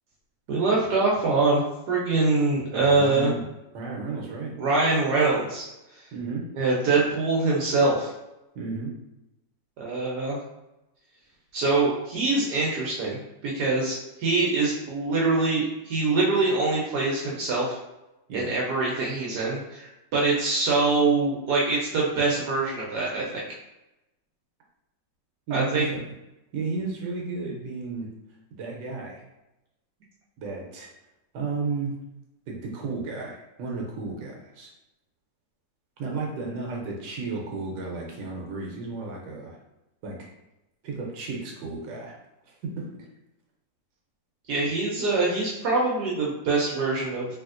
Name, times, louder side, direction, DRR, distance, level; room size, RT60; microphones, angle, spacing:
voice 1, 0.5-1.6 1.9-3.3 4.6-5.7 5.9-6.0 6.5-8.1 9.8-10.4 11.5-17.8 18.3-23.4 25.5-25.9 44.5-47.3, right 3 dB, 70° right, -4 dB, 1.1 m, -24 dB
voice 2, 2.7-3.4 3.7-4.6 6.1-6.5 8.5-8.9 18.3-18.5 25.5-26.1 26.5-28.1 28.6-29.2 30.4-30.9 31.3-32.0 32.5-34.7 36.0-39.6 40.0-40.3 40.8-42.2 42.4-42.9, right 4 dB, 85° right, -1 dB, 1.3 m, -33 dB
3.4 x 2.7 x 2.4 m, 0.93 s
omnidirectional pair, 2.0 m